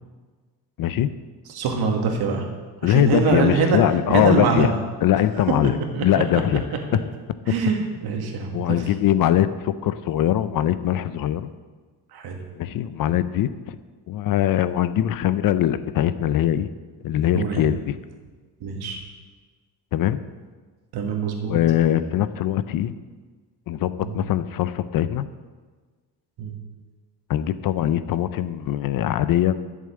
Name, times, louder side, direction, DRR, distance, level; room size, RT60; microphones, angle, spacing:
voice 1, 0.8-1.1 2.8-4.7 5.0-6.6 8.5-11.5 12.6-13.8 14.1-16.7 17.0-18.0 19.9-20.2 21.5-22.9 23.7-25.3 27.3-29.6, left 11 dB, 55° left, 13 dB, 0.6 m, -22 dB
voice 2, 1.5-2.5 2.8-3.8 4.1-4.8 5.6-6.4 7.5-8.9 12.1-12.4 17.3-17.6 18.6-19.0 20.9-21.6 24.0-24.2 26.4-26.6, right 4 dB, 65° right, 3 dB, 2.1 m, -24 dB
12.0 x 7.4 x 7.7 m, 1.4 s
cardioid pair, 160°, 40 cm